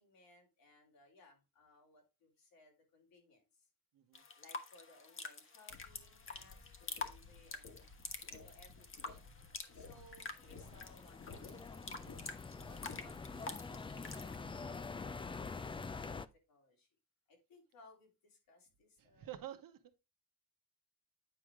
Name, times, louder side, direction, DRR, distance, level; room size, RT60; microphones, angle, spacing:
voice 1, 0.0-3.7 4.4-7.8 8.3-9.2 9.7-12.1 12.6-16.9 17.3-19.3, left 2 dB, 85° left, 3.2 m, -64 dB
sound 1, 4.1-14.4, left 4 dB, 35° left, 1.2 m, -48 dB
sound 2, 5.7-13.4, left 4 dB, 60° left, 1.6 m, -56 dB
sound 3, 10.3-16.3, left 4 dB, 15° left, 0.3 m, -46 dB
voice 2, 19.0-20.0, right 12 dB, 75° right, 1.0 m, -49 dB
9.3 x 4.7 x 3.6 m
cardioid pair, 100°, 34 cm